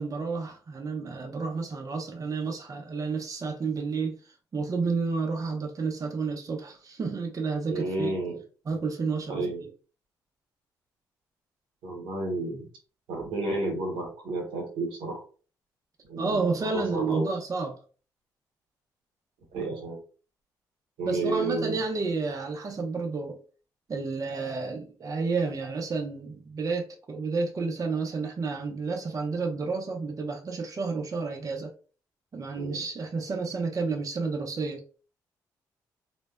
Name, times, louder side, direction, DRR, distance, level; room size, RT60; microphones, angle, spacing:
voice 1, 0.0-8.1 8.7-9.5 16.2-17.8 21.0-23.4 23.9-31.7 32.3-35.0, right 4 dB, 40° right, 0.5 m, -31 dB
voice 2, 7.7-8.4 9.3-9.6 11.8-12.7 13.1-15.2 16.0-17.3 19.5-20.0 21.0-21.8 32.5-32.8, right 2 dB, 85° right, 0.9 m, -31 dB
2.6 x 2.1 x 2.2 m
supercardioid pair, 50°, 9 cm